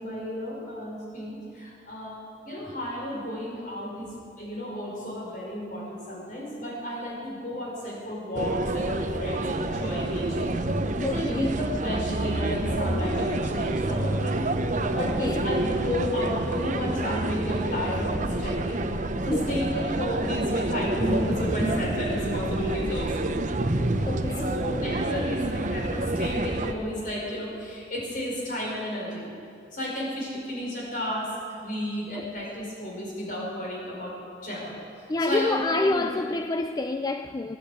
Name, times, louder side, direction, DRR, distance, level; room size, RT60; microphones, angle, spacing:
voice 1, 0.0-4.1 4.4-10.5 11.1-18.8 19.2-23.3 24.4-29.3 29.7-31.3 31.6-34.1 34.4-34.8 35.2-35.6 35.9-36.1, equal, 50° left, 5.3 m, -32 dB
sound 1, 8.3-26.7, right 2 dB, 45° right, 0.8 m, -28 dB
voice 2, 11.0-11.5 15.0-15.4 19.3-19.8 24.1-24.5 32.2-32.3 35.1-37.6, left 2 dB, 20° left, 0.4 m, -28 dB
16.5 x 10.0 x 8.5 m
head